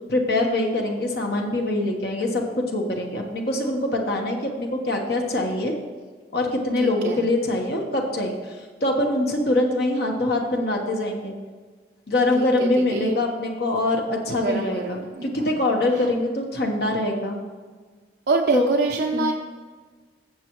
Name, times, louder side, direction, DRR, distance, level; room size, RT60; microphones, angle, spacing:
voice 1, 0.1-5.7 6.3-11.3 12.1-17.4 18.5-18.7 19.1-19.3, left 2 dB, 60° left, 1 dB, 1.2 m, -24 dB
voice 2, 6.8-7.2 12.3-13.2 14.4-15.4 16.0-16.1 18.3-19.3, right 3 dB, 65° right, 1 dB, 0.6 m, -25 dB
15.5 x 7.1 x 3.1 m, 1.4 s
head